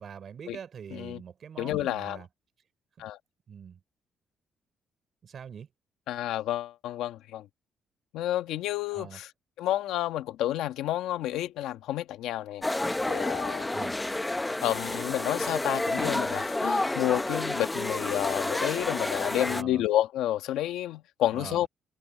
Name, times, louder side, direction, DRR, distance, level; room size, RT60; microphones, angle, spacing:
voice 1, 0.0-2.3 3.0-3.1 3.5-3.8 5.2-5.7 8.9-9.2 13.7-13.9 19.4-19.8 21.3-21.7, right 7 dB, 55° right, 4.5 m, -43 dB
voice 2, 0.9-1.2 1.6-2.2 3.0-3.2 6.1-7.5 8.1-9.3 9.6-12.6 13.1-13.8 14.6-21.7, left 13 dB, 90° left, 1.5 m, -30 dB
sound 1, 12.6-19.6, left 2 dB, 15° left, 1.0 m, -30 dB
cardioid pair, 90°, 0 cm